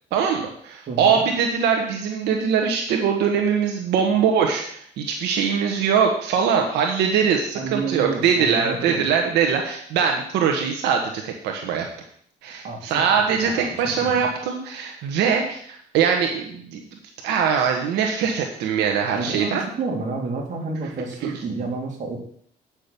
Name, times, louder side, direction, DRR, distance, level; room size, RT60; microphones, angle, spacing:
voice 1, 0.1-11.9 12.4-16.8 17.2-19.6 21.2-21.3, right 7 dB, 85° right, 2 dB, 1.3 m, -22 dB
voice 2, 0.9-1.2 7.6-9.0 12.6-13.0 13.3-13.7 14.2-14.3 19.1-22.2, right 3 dB, 45° right, 0 dB, 3.3 m, -30 dB
8.6 x 6.1 x 6.8 m, 0.62 s
cardioid pair, 110°, 17 cm